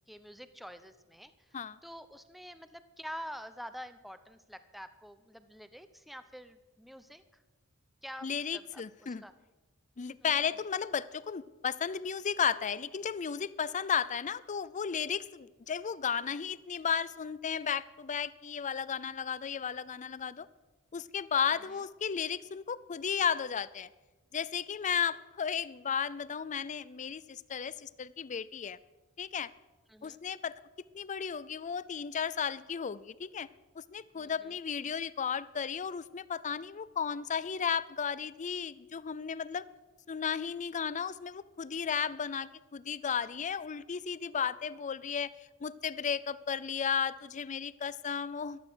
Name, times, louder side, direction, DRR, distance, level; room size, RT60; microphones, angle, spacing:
voice 1, 0.1-1.6 1.8-7.4 8.0-9.3 10.2-10.4 21.5-21.8 29.9-30.2 34.1-34.6, equal, ahead, 11 dB, 0.7 m, -47 dB
voice 2, 8.2-9.2 10.0-20.5 20.9-23.9 24.3-28.8 29.2-29.5 30.0-30.5 30.9-33.5 33.8-39.6 40.1-45.3 45.6-48.6, left 7 dB, 35° left, 18 dB, 0.5 m, -34 dB
14.5 x 12.0 x 6.2 m, 1.2 s
head